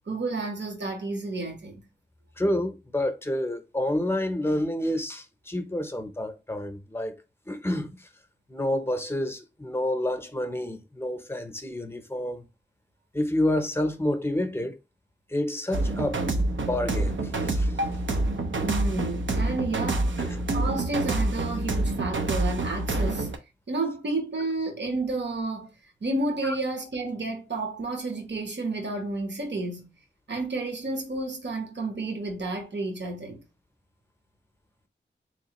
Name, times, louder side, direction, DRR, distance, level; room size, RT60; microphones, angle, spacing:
voice 1, 0.1-1.8 18.6-20.1 20.5-23.3 23.7-25.7 26.0-29.9 30.3-33.4, right 2 dB, 65° right, 1.0 m, -31 dB
voice 2, 2.4-7.2 7.5-8.1 8.5-12.4 13.1-14.8 15.3-16.2 16.6-17.7 20.2-20.5 26.4-26.5, left 1 dB, 10° left, 0.7 m, -29 dB
sound 1, 15.7-23.4, right 2 dB, 80° right, 0.6 m, -27 dB
3.6 x 3.1 x 2.9 m
wide cardioid pair, 70°, 19 cm